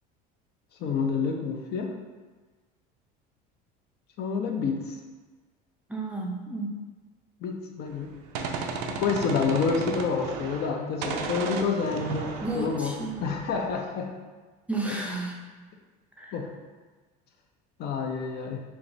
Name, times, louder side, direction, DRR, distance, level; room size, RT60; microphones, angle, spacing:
voice 1, 0.8-2.0 4.2-5.0 7.4-8.1 8.9-14.1 14.9-15.0 16.3-16.5 17.8-18.6, left 5 dB, 50° left, 2 dB, 0.6 m, -28 dB
voice 2, 5.9-6.8 12.4-13.1 14.7-15.3 16.2-16.3, right 2 dB, 5° right, -2 dB, 0.5 m, -32 dB
Gunshot gunfire, 7.9-10.8 11.0-13.7, right 5 dB, 80° right, 0.5 m, -34 dB
4.6 x 3.0 x 2.6 m, 1.3 s
supercardioid pair, 115°, 21 cm